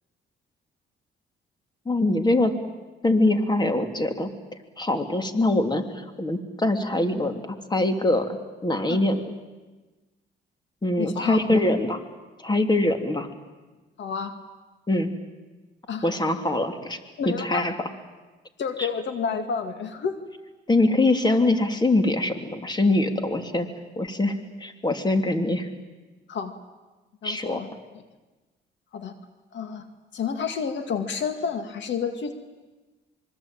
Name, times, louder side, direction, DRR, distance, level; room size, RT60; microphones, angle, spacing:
voice 1, 1.8-2.5 3.0-4.3 4.8-8.4 8.6-9.3 10.8-12.0 12.4-13.3 14.9-15.1 16.0-17.0 17.2-17.7 18.8-18.9 20.7-23.7 24.0-25.7 27.2-27.6, left 2 dB, 20° left, 7 dB, 2.9 m, -23 dB
voice 2, 11.0-11.6 14.0-14.3 15.9-16.1 17.2-17.7 18.6-20.2 26.3-26.5 27.2-27.7 28.9-29.1 29.5-29.8 30.1-32.3, left 6 dB, 65° left, 8 dB, 2.1 m, -29 dB
26.0 x 23.5 x 9.0 m, 1.2 s
cardioid pair, 90°, 20 cm